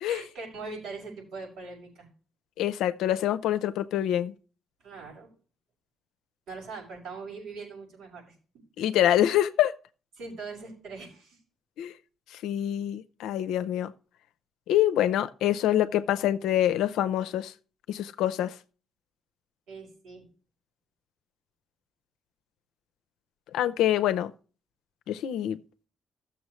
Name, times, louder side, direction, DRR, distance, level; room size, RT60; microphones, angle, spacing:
voice 1, 0.0-2.1 4.8-5.3 6.5-8.3 10.2-11.4 19.7-20.3, right 4 dB, 85° right, 5.7 m, -41 dB
voice 2, 2.6-4.3 8.8-9.7 11.8-11.9 12.3-13.9 14.7-17.5 17.9-18.6 23.5-24.3 25.1-25.6, left 12 dB, 90° left, 0.5 m, -25 dB
15.5 x 7.0 x 3.1 m
cardioid pair, 90°, 0 cm